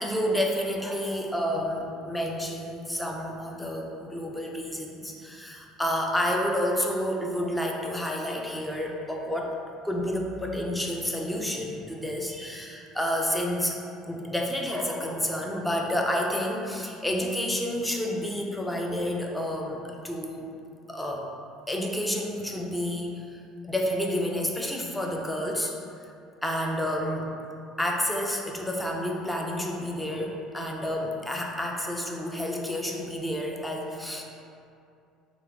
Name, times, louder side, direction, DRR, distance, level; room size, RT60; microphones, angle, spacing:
voice 1, 0.0-9.5 9.8-13.8 14.1-20.5 20.9-21.3 21.7-25.7 26.4-27.4 27.8-34.2, equal, 5° left, 0 dB, 0.5 m, -30 dB
3.6 x 2.8 x 3.5 m, 2.5 s
supercardioid pair, 95°, 0 cm